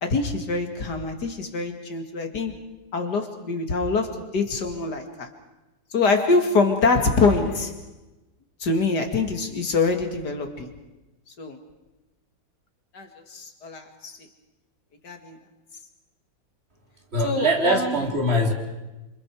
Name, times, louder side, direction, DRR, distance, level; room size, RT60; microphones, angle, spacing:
voice 1, 0.0-2.6 2.9-5.3 5.9-7.8 8.6-10.7 11.4-11.6 12.9-14.2 15.0-15.4 17.2-18.0, left 3 dB, 55° left, 6 dB, 2.6 m, -24 dB
voice 2, 17.1-18.5, equal, 30° right, 3 dB, 3.2 m, -22 dB
28.0 x 27.0 x 4.8 m, 1.1 s
omnidirectional pair, 2.1 m